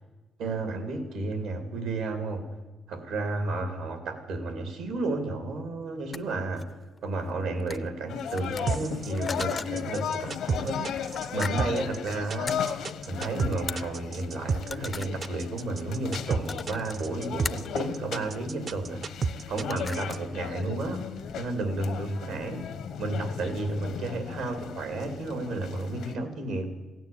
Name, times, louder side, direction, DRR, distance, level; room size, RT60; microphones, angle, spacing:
voice 1, 0.4-2.4 2.9-6.6 7.0-12.8 13.1-19.0 19.5-21.0 21.4-22.6 23.0-26.7, right 2 dB, 90° right, 7 dB, 2.8 m, -32 dB
sound 1, 6.0-6.2 6.6-7.3 7.6-7.9 8.2-9.7 10.2-10.4 10.9-11.5 11.8-12.1 12.5-12.6 13.2-13.3 13.5-13.9 14.5-15.3 16.2-16.9 17.4-17.7 19.0-19.3 19.5-20.3, left 4 dB, 35° left, 0.4 m, -39 dB
sound 2, 8.1-26.1, left 8 dB, 80° left, 1.0 m, -36 dB
sound 3, 8.7-20.2, right 5 dB, 50° right, 0.6 m, -31 dB
16.0 x 9.1 x 8.7 m, 1.2 s
cardioid pair, 90°, 0 cm